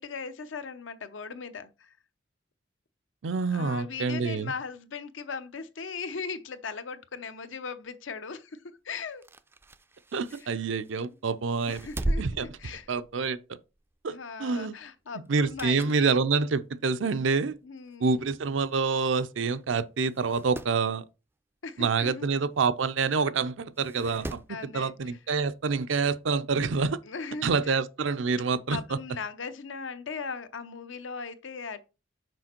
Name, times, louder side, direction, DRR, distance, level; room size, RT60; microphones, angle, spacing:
voice 1, 0.0-1.9 3.5-9.2 10.3-10.5 11.7-12.9 14.1-16.2 17.6-18.2 21.6-22.3 24.0-24.2 24.5-25.2 27.0-27.8 28.7-31.8, left 5 dB, 80° left, 0.7 m, -39 dB
voice 2, 3.2-4.5 10.1-11.9 12.2-12.5 12.9-13.4 14.0-14.8 15.3-17.6 18.0-21.0 21.8-24.4 24.7-27.0 27.4-29.0, right 4 dB, 80° right, 0.5 m, -27 dB
sound 1, 9.1-11.0 11.5-13.4 13.8-14.0 15.3-16.1 16.5-16.6 17.5-17.6 17.9-18.0 18.1-18.2 19.1-19.3 19.6-19.7 20.1-20.8 22.6-22.7 23.8-24.6 25.9-26.0, right 1 dB, 10° right, 0.3 m, -37 dB
6.2 x 5.1 x 4.4 m
head